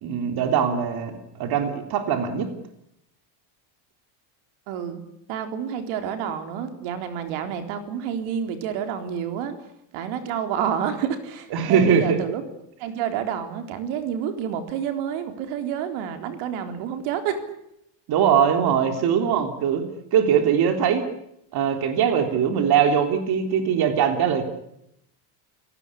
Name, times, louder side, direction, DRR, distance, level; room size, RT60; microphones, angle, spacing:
voice 1, 0.0-2.5 11.5-12.2 18.1-19.9 20.1-21.1 21.5-24.4, right 8 dB, 50° right, 7 dB, 3.6 m, -21 dB
voice 2, 4.7-5.0 5.3-9.5 9.9-12.4 12.8-17.4, right 8 dB, 75° right, 8 dB, 4.0 m, -29 dB
29.5 x 18.0 x 10.0 m, 0.78 s
cardioid pair, 160°, 50 cm